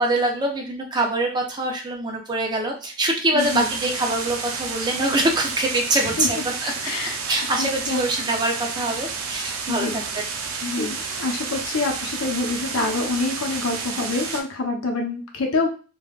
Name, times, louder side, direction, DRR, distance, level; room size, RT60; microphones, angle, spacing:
voice 1, 0.0-6.7 7.3-10.2 10.6-10.7, right 2 dB, 20° right, 1 dB, 0.4 m, -24 dB
voice 2, 3.3-3.7 6.0-6.3 6.8-7.2 7.6-8.0 9.7-10.2 10.6-15.7, left 3 dB, 80° left, 2 dB, 0.7 m, -26 dB
sound 1, 3.4-14.4, right 5 dB, 85° right, 0.5 m, -31 dB
3.4 x 2.2 x 2.3 m, 0.37 s
head